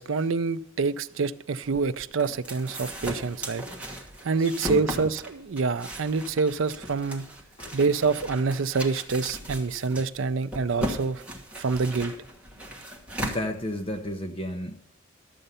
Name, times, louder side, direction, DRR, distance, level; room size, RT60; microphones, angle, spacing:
voice 1, 0.0-3.6 4.2-7.3 7.7-11.2 11.6-12.1, right 4 dB, 65° right, 0.5 m, -26 dB
sound 1, 1.6-14.1, equal, 5° right, 1.4 m, -37 dB
voice 2, 4.4-5.1 7.6-7.8 13.2-14.8, left 1 dB, 25° left, 0.7 m, -32 dB
12.0 x 7.8 x 5.5 m
head